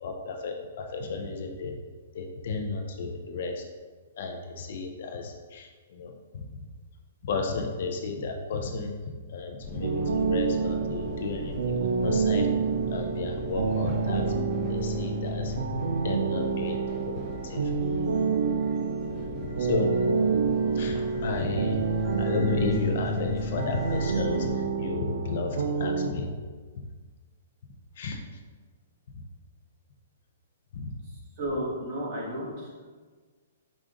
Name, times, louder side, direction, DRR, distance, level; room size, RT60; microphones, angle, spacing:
voice 1, 0.0-1.8 2.1-3.6 4.2-6.4 7.2-8.9 9.3-12.5 12.9-14.3 14.7-15.6 16.0-16.8 17.1-17.7 19.6-19.9 20.7-26.4 28.0-28.2 30.7-30.9, left 3 dB, 50° left, 4 dB, 0.4 m, -33 dB
sound 1, 9.6-24.5, left 1 dB, ahead, 0.6 m, -39 dB
sound 2, 9.8-26.1, right 4 dB, 80° right, 0.4 m, -28 dB
voice 2, 31.4-32.9, equal, 30° right, -5 dB, 1.1 m, -33 dB
5.0 x 2.4 x 3.6 m, 1.5 s
hypercardioid pair, 175°, 0 cm